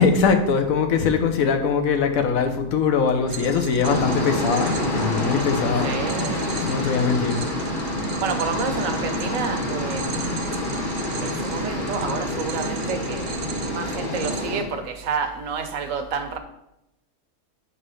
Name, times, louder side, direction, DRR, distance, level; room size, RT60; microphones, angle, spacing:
voice 1, 0.0-5.9 6.6-7.4, left 5 dB, 70° left, 1.3 m, -21 dB
sound 1, 3.3-14.4, right 6 dB, 90° right, 1.1 m, -35 dB
sound 2, 3.8-14.6, left 2 dB, 35° left, 1.4 m, -27 dB
voice 2, 5.8-6.6 8.2-10.7 11.2-16.4, right 5 dB, 65° right, 1.2 m, -30 dB
8.8 x 3.2 x 6.2 m
omnidirectional pair, 1.5 m